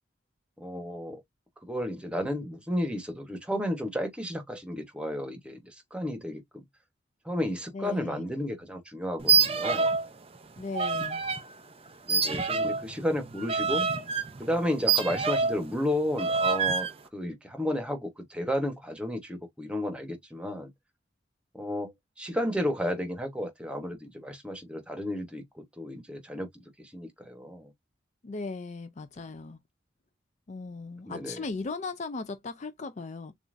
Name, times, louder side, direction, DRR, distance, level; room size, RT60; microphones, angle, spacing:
voice 1, 0.6-1.2 1.6-6.6 7.2-9.9 12.1-13.9 14.4-20.7 21.5-27.7 31.1-31.4, left 1 dB, 5° right, 1.1 m, -33 dB
voice 2, 7.7-8.3 10.6-11.2 28.2-29.6 30.5-33.3, left 3 dB, 40° left, 0.4 m, -37 dB
sound 1, 9.2-10.1 10.4-11.4 12.1-15.7 16.2-16.9, right 5 dB, 30° right, 0.7 m, -26 dB
6.7 x 2.5 x 2.6 m
head